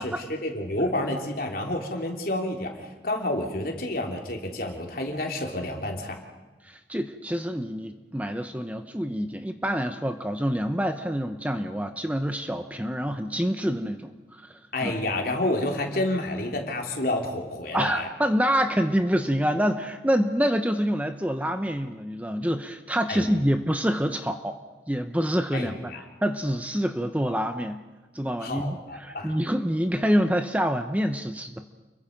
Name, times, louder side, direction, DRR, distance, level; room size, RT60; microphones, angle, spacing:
voice 1, 0.0-6.2 14.7-18.1 23.1-23.3 25.5-26.0 28.4-29.3, left 1 dB, 55° left, 1 dB, 3.4 m, -29 dB
voice 2, 6.6-14.9 17.7-24.6 24.9-27.8 28.1-31.6, equal, 10° right, 7 dB, 0.8 m, -27 dB
29.5 x 22.5 x 5.3 m, 1.2 s
head